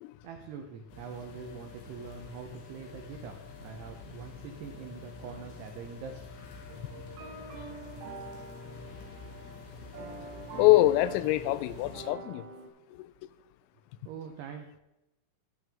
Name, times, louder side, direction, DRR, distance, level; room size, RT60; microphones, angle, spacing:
voice 1, 0.2-6.4 6.8-6.9 14.1-14.8, right 6 dB, 85° right, 4 dB, 2.3 m, -44 dB
sound 1, 0.9-12.1, left 4 dB, 70° left, 3.7 m, -47 dB
sound 2, 6.7-12.7, right 3 dB, 70° right, 2.5 m, -45 dB
voice 2, 10.6-12.4 13.0-13.1, left 16 dB, 85° left, 14 dB, 3.2 m, -24 dB
11.5 x 10.5 x 3.5 m, 0.92 s
omnidirectional pair, 5.9 m